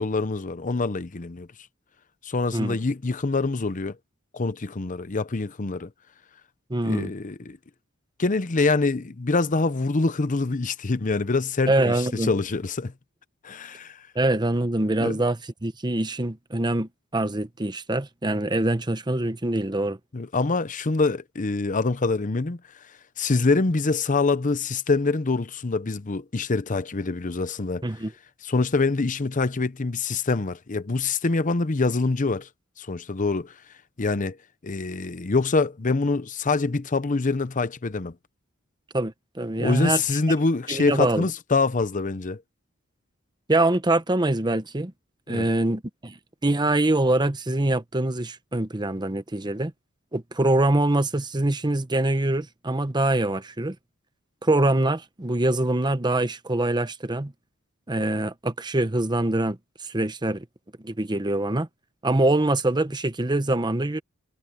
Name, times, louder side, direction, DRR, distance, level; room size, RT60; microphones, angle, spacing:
voice 1, 0.0-1.5 2.2-4.0 4.3-5.9 6.8-7.6 8.2-12.9 13.4-14.1 15.0-15.2 20.1-22.8 23.2-27.8 28.4-32.5 32.8-33.5 34.0-34.4 34.6-38.1 39.6-42.4 45.3-45.5, left 3 dB, 40° left, 0.7 m, -25 dB
voice 2, 6.7-7.1 11.7-12.3 14.1-20.0 27.8-28.1 38.9-40.0 40.7-41.3 43.5-44.9 45.3-49.7 50.1-53.8 54.4-57.3 57.9-59.6 59.8-60.4 60.8-61.7 62.0-64.0, right 2 dB, 20° right, 1.0 m, -24 dB
head